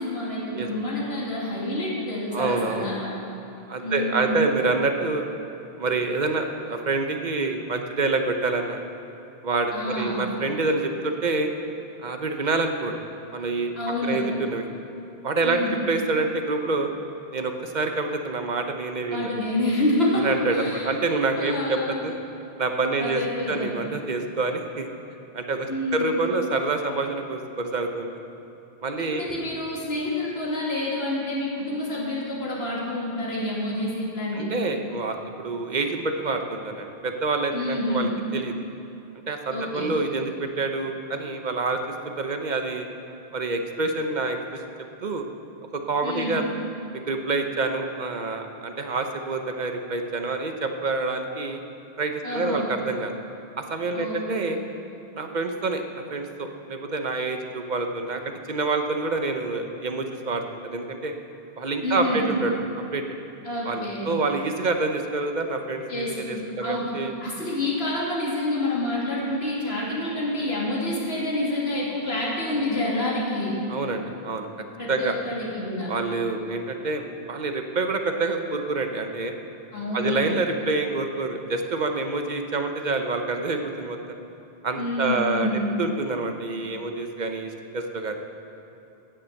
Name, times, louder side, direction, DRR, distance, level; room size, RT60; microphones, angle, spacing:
voice 1, 0.0-3.1 3.8-4.4 9.7-10.2 13.8-14.2 15.4-15.8 19.1-20.3 20.5-20.9 21.3-22.1 23.0-23.8 25.7-26.1 29.0-34.7 37.5-38.1 39.5-39.9 46.0-46.4 52.2-52.7 53.9-54.6 61.8-62.2 63.4-64.1 65.9-66.9 67.2-73.6 74.8-75.9 79.7-80.2 84.8-85.8, left 1 dB, 75° left, -5 dB, 2.7 m, -28 dB
voice 2, 2.3-2.9 3.7-5.3 5.8-8.8 9.4-11.5 12.0-12.9 13.3-13.7 14.0-14.6 15.2-16.9 17.3-19.3 20.2-22.2 22.6-23.2 23.5-24.9 25.3-28.2 28.8-29.2 34.3-38.5 39.3-41.8 42.2-42.9 43.3-44.6 45.0-45.2 45.7-46.4 46.9-51.6 52.0-53.1 53.7-54.6 55.1-61.1 61.6-62.5 62.9-63.0 63.7-67.1 73.7-74.5 74.9-75.1 75.9-79.3 79.9-84.0 84.6-85.5 85.8-88.2, right 3 dB, 45° right, 5 dB, 1.0 m, -27 dB
16.5 x 7.2 x 6.5 m, 2.8 s
omnidirectional pair, 1.0 m